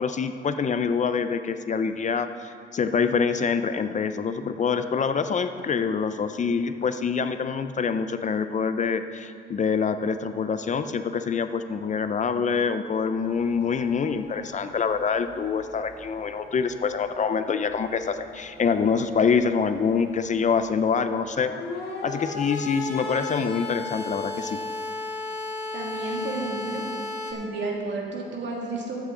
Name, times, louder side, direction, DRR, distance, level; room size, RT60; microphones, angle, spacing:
voice 1, 0.0-21.5 22.0-24.6, left 6 dB, 40° left, 10 dB, 0.5 m, -25 dB
sound 1, 13.2-27.3, left 3 dB, 55° left, 2.0 m, -37 dB
voice 2, 25.7-26.9 27.3-29.0, right 3 dB, 65° right, -2 dB, 2.3 m, -32 dB
14.0 x 8.3 x 3.8 m, 2.3 s
cardioid pair, 90°, 20 cm